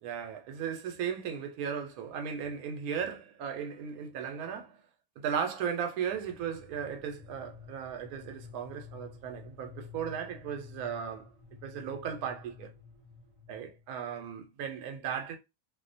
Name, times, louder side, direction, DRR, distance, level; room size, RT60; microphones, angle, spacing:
voice 1, 0.0-4.8 5.2-11.3 11.6-12.7 13.5-15.4, right 7 dB, 80° right, 1.0 m, -36 dB
sound 1, 6.1-13.9, left 6 dB, 55° right, 0.3 m, -51 dB
2.5 x 2.1 x 2.5 m
omnidirectional pair, 1.5 m